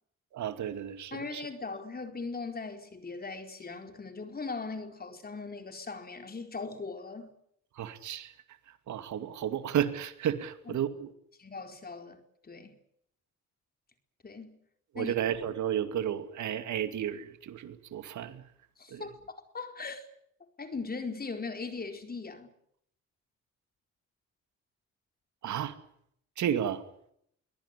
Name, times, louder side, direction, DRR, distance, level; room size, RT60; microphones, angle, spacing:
voice 1, 0.3-1.5 7.8-8.3 8.9-11.1 14.9-18.4 18.9-19.1 25.4-25.8 26.4-26.8, right 10 dB, 70° right, 2.5 m, -32 dB
voice 2, 1.1-7.3 10.7-10.8 11.4-12.8 14.2-14.6 14.9-15.1 18.8-19.2 19.5-20.0 20.6-22.5, left 4 dB, 30° left, 4.6 m, -39 dB
23.5 x 18.0 x 10.0 m
cardioid pair, 90°, 30 cm